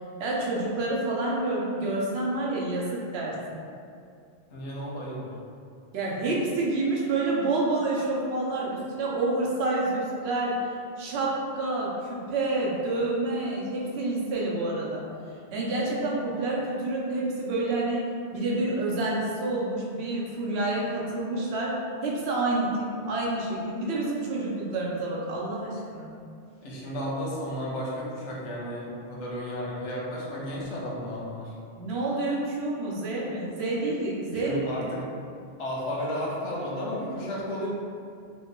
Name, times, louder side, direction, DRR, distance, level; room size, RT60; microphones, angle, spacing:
voice 1, 0.2-3.4 5.9-10.7 11.0-15.0 15.5-18.1 18.3-26.1 31.8-34.6, right 2 dB, 70° right, -4 dB, 0.8 m, -28 dB
voice 2, 4.5-5.3 26.6-31.5 34.3-35.0 35.6-37.7, equal, 85° left, -4 dB, 1.0 m, -33 dB
3.0 x 2.2 x 3.6 m, 2.4 s
omnidirectional pair, 1.2 m